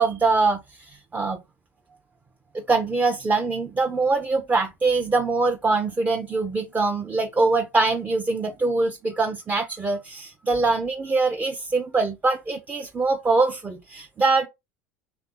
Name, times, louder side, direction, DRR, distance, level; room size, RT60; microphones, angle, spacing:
voice 1, 0.0-1.4 2.5-14.5, right 3 dB, 20° right, 0.7 m, -23 dB
3.5 x 3.4 x 3.7 m
hypercardioid pair, 75°, 7 cm